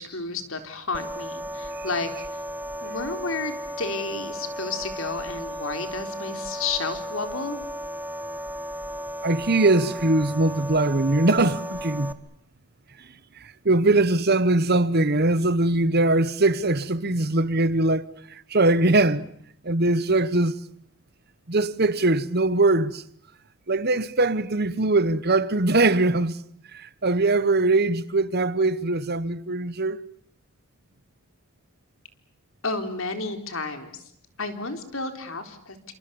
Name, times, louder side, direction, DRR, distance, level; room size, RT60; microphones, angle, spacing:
voice 1, 0.0-2.2 2.8-7.6 32.6-34.1 34.4-35.9, left 3 dB, 65° left, 3.9 m, -31 dB
sound 1, 0.9-12.1, equal, 10° right, 1.3 m, -35 dB
voice 2, 9.2-12.2 13.4-19.2 19.6-20.6 21.5-23.0 23.7-26.4 26.7-30.0, right 2 dB, 45° right, 1.1 m, -21 dB
29.0 x 27.0 x 7.0 m
head